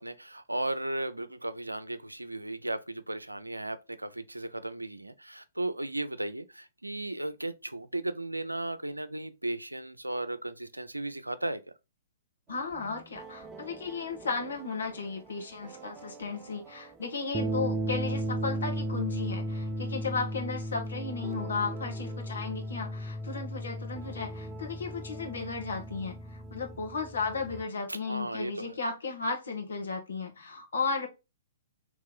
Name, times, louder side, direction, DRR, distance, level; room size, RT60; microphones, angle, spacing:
voice 1, 0.0-11.6 27.9-28.8, right 2 dB, 85° right, 0.5 m, -35 dB
voice 2, 12.5-31.1, left 4 dB, 65° left, 1.3 m, -35 dB
sound 1, 12.7-27.6, right 1 dB, 20° right, 0.4 m, -36 dB
3.6 x 3.0 x 3.9 m
figure-of-eight pair, 115°, 0 cm